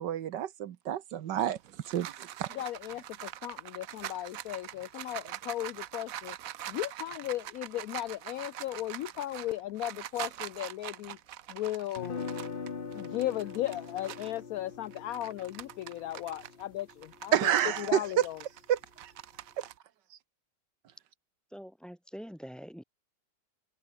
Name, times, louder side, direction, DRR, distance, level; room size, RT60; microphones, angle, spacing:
voice 1, 0.0-1.6 1.8-2.5 17.3-18.0 18.7-18.8 19.6-19.7, right 10 dB, 80° right, 1.6 m, -29 dB
sound 1, 1.4-14.4 14.8-19.7, right 12 dB, 60° right, 1.0 m, -44 dB
voice 2, 2.5-6.4 6.7-11.2 11.5-12.3 12.9-17.5 17.8-18.4, left 14 dB, 70° left, 0.9 m, -36 dB
sound 2, 12.0-17.9, left 5 dB, 35° left, 1.3 m, -42 dB
voice 3, 21.5-22.8, equal, ahead, 3.7 m, -45 dB
omnidirectional pair, 1.9 m